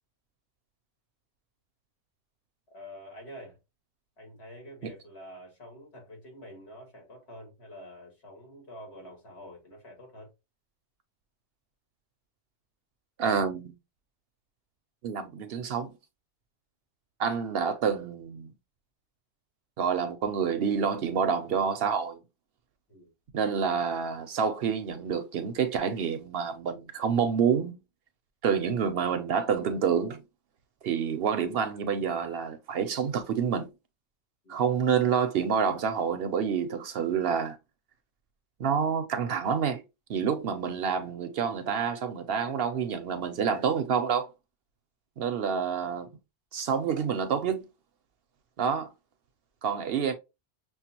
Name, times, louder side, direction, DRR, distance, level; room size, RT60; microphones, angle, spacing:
voice 1, 2.7-3.6 4.2-10.3 22.9-23.1 34.4-34.6, equal, 65° left, 2.1 m, -47 dB
voice 2, 13.2-13.7 15.0-15.9 17.2-18.5 19.8-22.2 23.3-27.7 28.4-30.2 30.8-33.7 34.5-37.6 38.6-39.8 40.1-44.3 45.2-46.1 46.5-47.7 48.6-48.9 49.6-50.1, right 7 dB, 65° right, 0.7 m, -28 dB
6.2 x 2.2 x 2.8 m
omnidirectional pair, 1.2 m